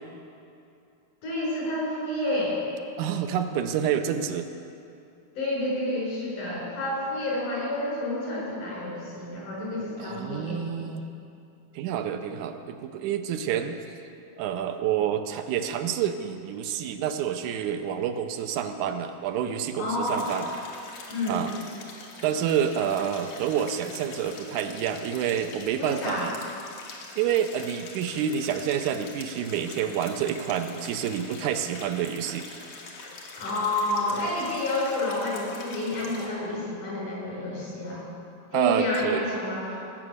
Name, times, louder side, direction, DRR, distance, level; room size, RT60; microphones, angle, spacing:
voice 1, 1.2-2.6 5.4-10.6 19.8-20.4 21.1-21.5 25.8-26.3 33.4-38.0 38.5-39.8, left 1 dB, 90° left, -5 dB, 5.7 m, -29 dB
voice 2, 3.0-4.5 10.0-11.0 11.7-13.8 14.4-20.5 21.3-21.5 22.2-26.4 27.2-32.5 38.5-39.2, right 9 dB, 80° right, 7 dB, 2.1 m, -28 dB
sound 1, 20.0-36.3, left 3 dB, 75° left, 2.8 m, -44 dB
18.0 x 6.1 x 7.9 m, 2.6 s
omnidirectional pair, 3.5 m